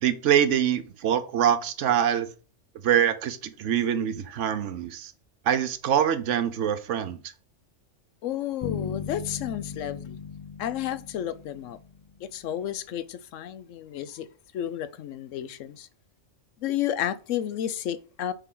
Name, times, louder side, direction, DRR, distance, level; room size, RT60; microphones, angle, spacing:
voice 1, 0.0-2.3 2.8-5.1 5.4-7.2, right 9 dB, 75° right, 1.0 m, -24 dB
voice 2, 8.2-10.2 10.6-11.8 12.2-14.3 14.5-15.9 16.6-18.3, left 11 dB, 85° left, 1.0 m, -32 dB
sound 1, 8.6-12.3, left 7 dB, 60° left, 0.4 m, -37 dB
6.7 x 4.6 x 3.7 m
omnidirectional pair, 1.3 m